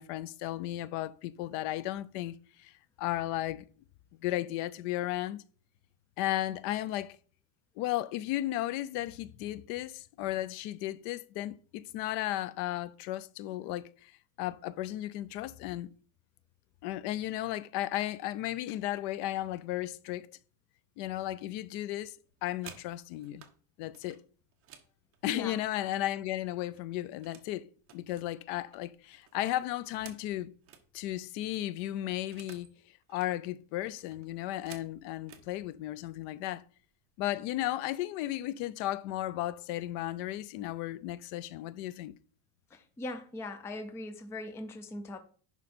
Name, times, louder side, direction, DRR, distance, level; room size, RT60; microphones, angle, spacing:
voice 1, 0.0-2.7 3.0-3.6 4.2-5.4 6.2-7.2 7.8-14.1 14.4-15.9 16.8-20.3 21.0-22.2 22.4-23.5 23.8-24.2 25.2-27.7 27.9-30.5 30.9-32.7 33.1-36.6 37.2-42.1, left 14 dB, 70° left, 0.6 m, -34 dB
sound 1, 22.3-23.5 23.9-26.3 26.6-27.5 27.8-30.9 31.2-31.3 31.5-32.7 33.0-33.3 33.9-35.5 36.3-36.5 36.8-37.2 37.5-38.0, right 9 dB, 30° right, 1.1 m, -55 dB
voice 2, 25.3-25.6 42.7-45.2, left 2 dB, 5° left, 0.3 m, -40 dB
11.0 x 4.8 x 4.3 m
cardioid pair, 175°, 42 cm